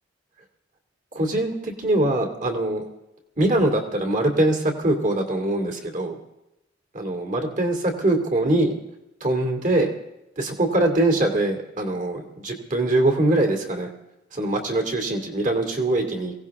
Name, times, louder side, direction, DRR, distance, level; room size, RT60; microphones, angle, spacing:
voice 1, 1.1-2.8 3.4-6.2 6.9-8.8 9.2-9.9 10.4-13.9 14.3-16.3, right 1 dB, 40° right, 4 dB, 2.6 m, -23 dB
22.5 x 17.5 x 3.6 m, 0.91 s
head